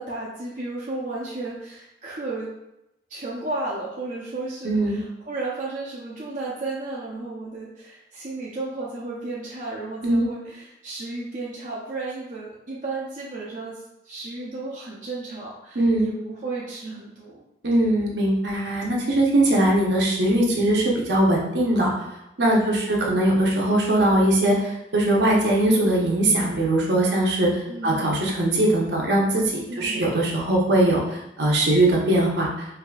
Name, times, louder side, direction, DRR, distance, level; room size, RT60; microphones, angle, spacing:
voice 1, 0.0-2.5 3.1-17.4 17.7-17.8 22.5-22.9 27.7-28.1 29.7-30.1, right 2 dB, 45° right, -6 dB, 0.6 m, -33 dB
voice 2, 4.6-5.0 10.0-10.3 15.7-16.1 17.6-21.9 22.4-27.5 27.8-32.5, right 1 dB, 65° right, -2 dB, 0.8 m, -21 dB
4.7 x 2.7 x 2.3 m, 0.87 s
head